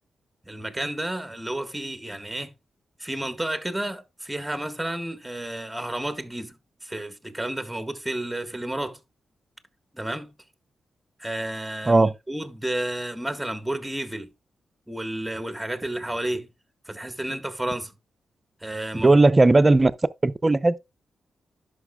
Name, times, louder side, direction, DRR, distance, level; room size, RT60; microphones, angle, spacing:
voice 1, 0.4-2.5 3.0-9.0 9.9-10.3 11.2-14.3 14.9-16.5 16.8-17.9 18.6-19.2, right 1 dB, 10° right, 1.5 m, -31 dB
voice 2, 19.0-19.9 20.2-20.8, right 2 dB, 30° right, 0.6 m, -17 dB
11.0 x 6.0 x 2.3 m
supercardioid pair, 55°, 0 cm